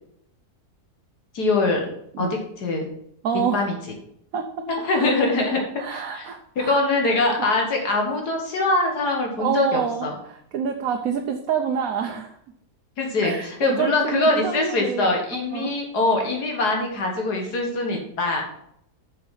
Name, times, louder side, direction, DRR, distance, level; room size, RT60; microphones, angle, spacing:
voice 1, 1.3-1.9 2.2-2.3 2.6-2.9 3.5-3.8 4.7-5.6 5.9-6.3 6.6-10.1 13.0-18.4, left 2 dB, 70° left, 1 dB, 2.0 m, -23 dB
voice 2, 3.2-3.6 4.3-4.6 5.0-5.2 5.8-6.8 9.4-12.3 13.2-15.7, right 6 dB, 60° right, 4 dB, 1.1 m, -27 dB
6.8 x 6.7 x 5.7 m, 0.73 s
omnidirectional pair, 1.8 m